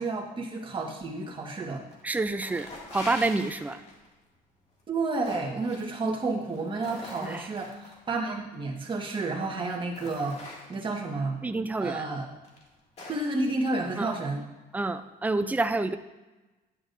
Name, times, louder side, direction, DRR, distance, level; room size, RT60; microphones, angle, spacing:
voice 1, 0.0-1.8 4.9-10.4 10.7-11.4 11.8-12.3 13.1-14.4, right 3 dB, 30° right, 0 dB, 1.6 m, -31 dB
sound 1, 1.6-2.0 2.3-4.1 4.8-5.8 6.4-7.9 9.0-9.1 9.6-11.0 11.8-11.9 12.4-13.3, left 2 dB, 40° left, 2.3 m, -43 dB
voice 2, 2.0-3.8 7.2-7.5 11.4-12.1 14.0-14.1 14.7-16.0, right 3 dB, 10° right, 10 dB, 0.4 m, -28 dB
10.0 x 8.6 x 2.6 m, 1.1 s
cardioid pair, 110°, 17 cm